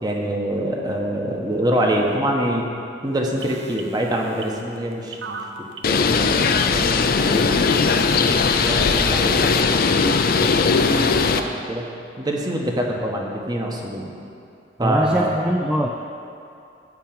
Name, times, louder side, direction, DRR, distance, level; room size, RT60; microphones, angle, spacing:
voice 1, 0.0-2.7 3.0-5.4 5.8-7.6 8.1-9.6 9.9-10.0 10.4-10.8 11.1-11.8 12.2-14.1 14.8-15.3, right 1 dB, 20° right, 0 dB, 1.3 m, -25 dB
sound 1, 3.4-7.3 7.9-8.0, right 5 dB, 80° right, 0.9 m, -38 dB
Bird, 5.8-11.4, left 4 dB, 50° left, 0.5 m, -18 dB
voice 2, 14.8-15.9, equal, 5° right, 0 dB, 0.5 m, -22 dB
13.5 x 4.6 x 8.8 m, 2.6 s
head